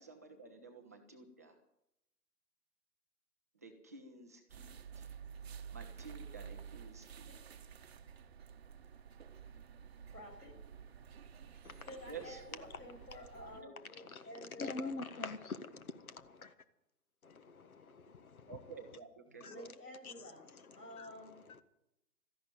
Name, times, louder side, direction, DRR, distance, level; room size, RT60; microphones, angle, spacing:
voice 1, 0.0-1.6 3.5-5.1 5.7-7.3 12.1-12.6 13.5-13.7 18.5-19.7, right 5 dB, 10° right, 3 dB, 0.6 m, -52 dB
sound 1, 4.5-13.6, right 7 dB, 40° right, 1.0 m, -51 dB
voice 2, 10.1-10.6 11.9-14.9 19.3-20.4 20.8-21.4, left 1 dB, 80° left, 1 dB, 6.0 m, -51 dB
voice 3, 11.6-12.0 12.7-13.1 13.3-16.6 17.2-19.0 19.4-19.7 20.0-21.6, left 4 dB, 60° left, 12 dB, 1.7 m, -47 dB
13.5 x 11.0 x 9.2 m, 0.86 s
figure-of-eight pair, 145°, 48 cm